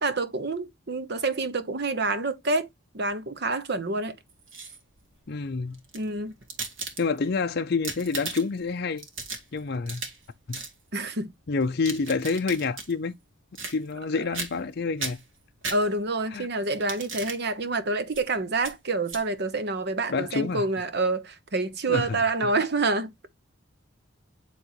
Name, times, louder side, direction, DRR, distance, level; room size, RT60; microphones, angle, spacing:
voice 1, 0.0-2.7 2.9-4.1 5.9-6.3 10.9-11.3 15.7-23.1, right 3 dB, 55° right, 1.0 m, -27 dB
sound 1, 4.3-5.0 5.7-7.3 7.7-8.6 9.0-10.2 10.5-10.7 11.6-12.9 13.5-14.1 14.3-14.7 15.0-16.2 16.7-17.4 18.1-18.2 18.6-18.7 19.1-19.2, right 4 dB, 80° right, 2.0 m, -37 dB
voice 2, 5.3-5.8 7.0-9.1 9.5-10.0 10.5-10.6 11.5-13.1 13.7-15.2 16.3-16.5 20.1-20.6 21.9-22.1 22.4-22.5, left 4 dB, 50° left, 0.5 m, -28 dB
10.5 x 3.6 x 3.0 m
head